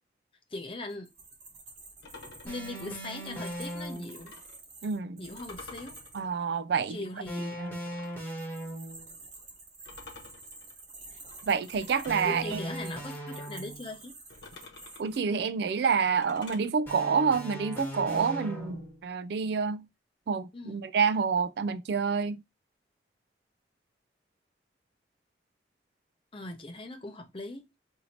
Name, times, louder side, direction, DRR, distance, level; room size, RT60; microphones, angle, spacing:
voice 1, 0.5-1.1 2.4-4.3 5.2-6.0 6.9-7.6 12.2-14.2 20.5-20.8 26.3-27.6, left 2 dB, 30° left, 0.6 m, -40 dB
sound 1, 0.9-6.2 8.0-15.2, right 3 dB, 40° right, 1.3 m, -50 dB
sound 2, 2.0-4.6 5.3-8.3 9.8-12.3 14.3-16.7, left 3 dB, 80° left, 1.0 m, -51 dB
sound 3, 2.5-4.3 7.3-9.1 12.0-14.0 16.9-19.1, right 1 dB, 10° left, 1.0 m, -39 dB
voice 2, 4.8-5.2 6.1-7.0 7.6-7.7 11.4-12.6 15.0-19.8 20.3-22.4, right 6 dB, 70° right, 0.3 m, -28 dB
2.8 x 2.7 x 4.1 m
head